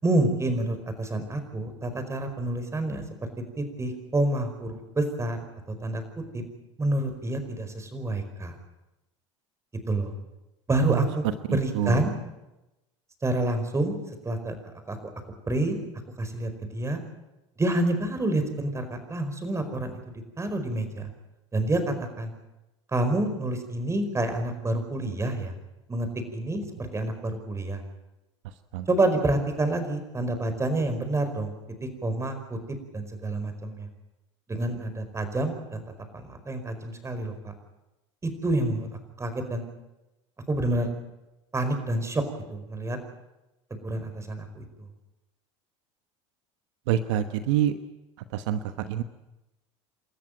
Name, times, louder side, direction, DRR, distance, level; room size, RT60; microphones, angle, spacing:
voice 1, 0.0-3.0 3.6-5.4 5.8-6.0 6.3-6.4 6.8-8.5 9.9-10.1 10.7-11.2 11.5-12.1 13.2-13.9 14.2-14.5 14.9-15.0 15.5-15.8 16.2-17.0 17.6-21.1 21.5-22.3 22.9-25.5 25.9-27.8 28.9-31.5 31.8-32.6 32.9-33.9 34.5-35.8 36.1-37.5 38.2-38.9 39.2-39.6 40.5-40.9 41.5-42.2 42.5-43.0 43.7-44.6, right 2 dB, 20° right, 8 dB, 4.8 m, -28 dB
voice 2, 46.9-47.7 48.3-48.6 48.9-49.0, right 11 dB, 75° right, 10 dB, 1.2 m, -25 dB
29.0 x 13.5 x 8.9 m, 0.99 s
hypercardioid pair, 90°, 15 cm